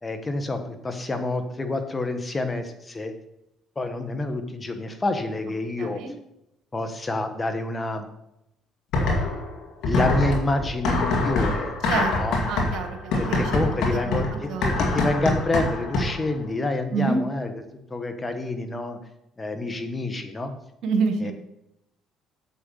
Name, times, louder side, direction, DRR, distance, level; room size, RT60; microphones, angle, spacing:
voice 1, 0.0-3.1 3.8-6.0 6.7-8.1 9.8-11.7 12.2-12.4 13.2-17.6 17.9-19.0 19.4-20.5 21.2-21.3, left 2 dB, 25° left, 7 dB, 1.3 m, -28 dB
voice 2, 5.8-6.1 11.9-12.1 12.5-13.6 14.0-14.7 16.9-17.2 20.8-21.3, right 4 dB, 70° right, 5 dB, 1.4 m, -27 dB
sound 1, 8.9-9.5 9.8-16.3, left 2 dB, 70° left, 2.2 m, -24 dB
7.8 x 6.3 x 5.5 m, 0.84 s
supercardioid pair, 70°, 0 cm